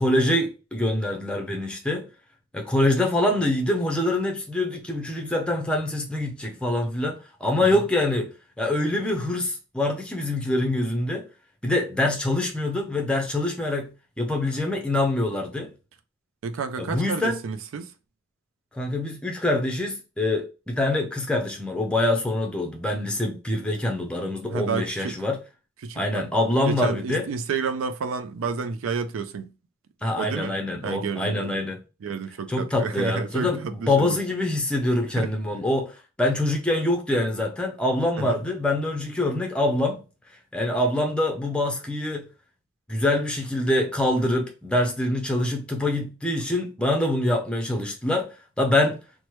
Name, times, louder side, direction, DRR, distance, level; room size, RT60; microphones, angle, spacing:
voice 1, 0.0-2.1 2.5-8.3 8.6-11.2 11.6-13.9 14.2-15.7 16.8-17.4 18.7-25.4 26.0-27.3 30.0-31.8 32.5-40.0 40.5-42.3 42.9-48.3 48.6-49.0, left 1 dB, 5° left, 0.5 m, -25 dB
voice 2, 16.4-17.9 24.5-25.1 25.8-26.3 26.7-29.5 30.2-30.6 30.8-31.6 32.0-34.2 35.2-35.3 38.2-38.4, right 5 dB, 90° right, 0.4 m, -30 dB
3.1 x 2.1 x 2.9 m
head